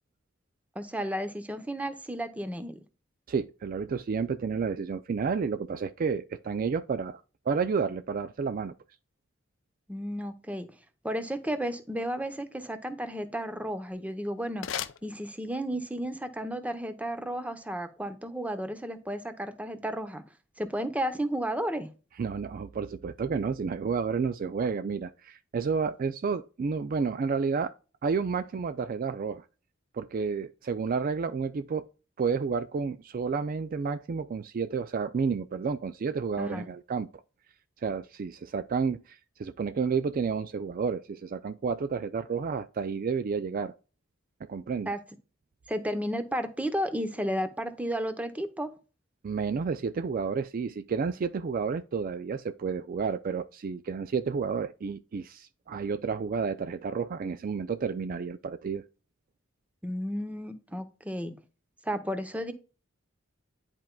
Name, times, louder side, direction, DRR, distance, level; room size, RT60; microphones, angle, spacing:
voice 1, 0.8-2.8 9.9-10.7 11.0-14.7 15.0-20.2 20.6-21.9 36.4-36.7 44.9-45.0 45.7-48.7 59.8-61.4 61.8-62.5, equal, 5° right, 0.8 m, -33 dB
voice 2, 3.3-7.2 7.5-8.7 22.2-27.7 28.0-29.4 29.9-31.8 32.2-37.1 37.8-43.7 44.5-44.9 49.2-58.8, right 5 dB, 45° right, 0.3 m, -31 dB
sound 1, 13.7-15.8, left 9 dB, 65° left, 0.5 m, -40 dB
11.0 x 4.5 x 2.2 m
head